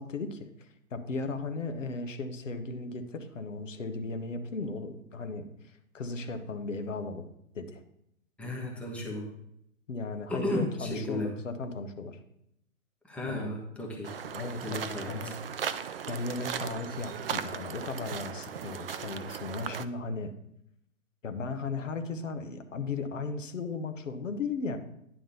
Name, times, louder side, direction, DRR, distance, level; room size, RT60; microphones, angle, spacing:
voice 1, 0.0-5.5 5.9-7.2 7.5-7.8 9.9-12.2 13.3-13.5 14.3-15.4 16.1-20.3 21.2-24.8, left 3 dB, 65° left, 8 dB, 1.3 m, -36 dB
voice 2, 8.4-9.3 10.3-11.4 13.0-14.3 14.6-15.3, left 1 dB, 5° left, -1 dB, 1.0 m, -34 dB
sound 1, 14.0-19.9, right 8 dB, 45° right, 0.5 m, -37 dB
10.0 x 3.7 x 6.8 m, 0.76 s
figure-of-eight pair, 125°, 42 cm